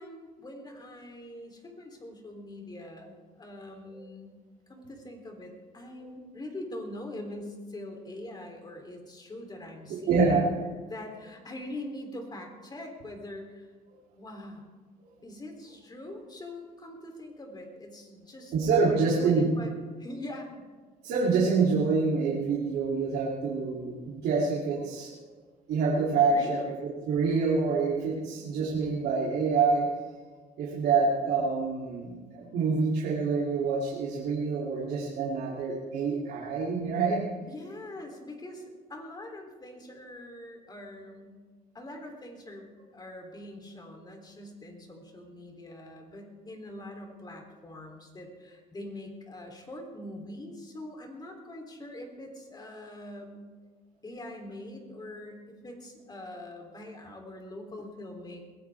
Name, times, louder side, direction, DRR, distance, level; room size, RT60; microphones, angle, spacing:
voice 1, 0.0-4.3 4.7-10.4 10.8-13.7 14.2-14.7 15.2-18.5 18.9-19.7 20.0-20.7 26.3-26.8 28.2-28.3 37.5-41.4 41.7-53.5 54.0-58.4, left 1 dB, 25° left, 3 dB, 3.4 m, -43 dB
voice 2, 10.1-10.4 18.5-19.5 21.0-25.2 25.7-26.7 27.1-29.9 30.6-37.2, right 4 dB, 75° right, -6 dB, 3.1 m, -26 dB
21.5 x 16.5 x 3.6 m, 1.4 s
cardioid pair, 110°, 17 cm